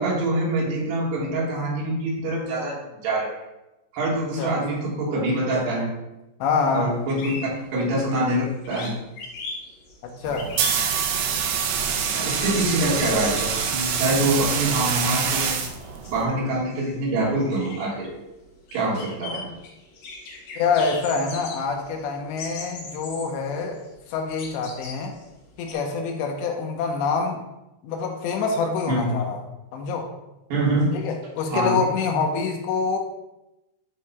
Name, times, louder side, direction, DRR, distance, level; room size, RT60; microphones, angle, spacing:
voice 1, 0.0-3.3 3.9-5.9 6.7-9.0 12.1-15.6 16.1-18.1 18.7-19.5 28.9-29.1 30.5-30.9 31.5-31.8, right 1 dB, 70° right, -4 dB, 3.5 m, -25 dB
voice 2, 6.4-6.9 10.0-10.5 20.6-23.8 24.1-25.2 25.6-27.4 27.8-29.4 29.7-30.1 30.9-33.0, left 5 dB, 80° left, 3 dB, 3.0 m, -26 dB
sound 1, 6.9-7.0 7.2-8.4 8.6-11.4 11.6-15.5 15.8-25.7, left 3 dB, 60° left, 2.6 m, -39 dB
sound 2, 10.2-16.2, right 7 dB, 90° right, 2.0 m, -25 dB
12.0 x 5.6 x 2.2 m, 0.95 s
omnidirectional pair, 5.1 m